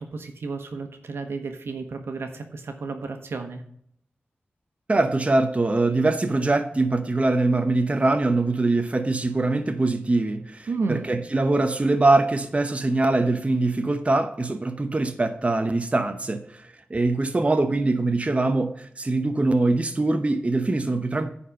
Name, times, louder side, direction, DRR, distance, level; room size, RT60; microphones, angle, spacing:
voice 1, 0.0-3.6 10.7-11.2, right 4 dB, 80° right, 6 dB, 1.2 m, -32 dB
voice 2, 4.9-21.3, right 2 dB, 30° right, 7 dB, 0.8 m, -23 dB
9.8 x 4.3 x 6.4 m, 0.65 s
wide cardioid pair, 65°, 4 cm